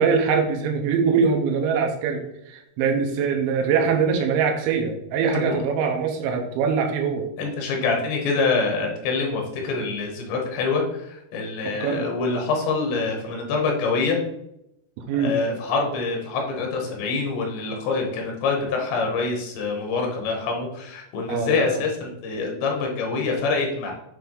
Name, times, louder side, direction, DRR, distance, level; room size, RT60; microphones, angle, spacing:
voice 1, 0.0-7.3 11.6-12.1 15.0-15.3 21.3-21.7, right 6 dB, 85° right, 3 dB, 2.9 m, -23 dB
voice 2, 5.2-5.6 7.4-14.2 15.2-23.9, left 4 dB, 75° left, 1 dB, 3.2 m, -25 dB
8.8 x 3.4 x 3.7 m, 0.82 s
omnidirectional pair, 5.4 m